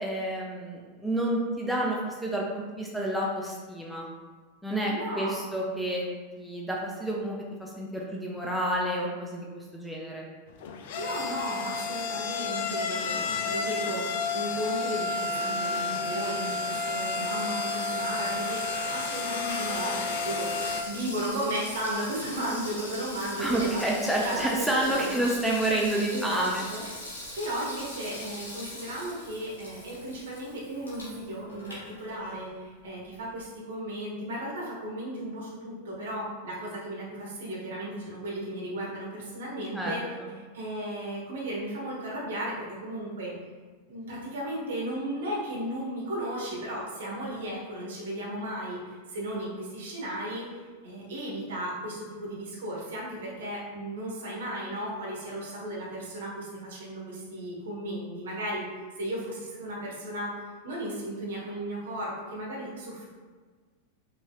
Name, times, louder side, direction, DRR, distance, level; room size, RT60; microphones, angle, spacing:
voice 1, 0.0-4.1 4.6-6.0 6.4-10.3 23.4-26.6 39.7-40.3, right 1 dB, ahead, -4 dB, 0.6 m, -29 dB
voice 2, 4.9-5.5 11.0-25.2 26.1-26.8 27.3-40.0 40.5-43.3 43.9-50.4 50.8-58.7 59.0-63.0, right 1 dB, 60° right, -4 dB, 1.2 m, -35 dB
sound 1, 10.5-20.8, left 3 dB, 50° left, 0.4 m, -31 dB
Water tap faucet / Sink (filling or washing), 18.2-32.5 32.9-33.0, left 1 dB, 70° left, 1.4 m, -42 dB
5.2 x 3.3 x 2.3 m, 1.4 s
figure-of-eight pair, 90°, 0 cm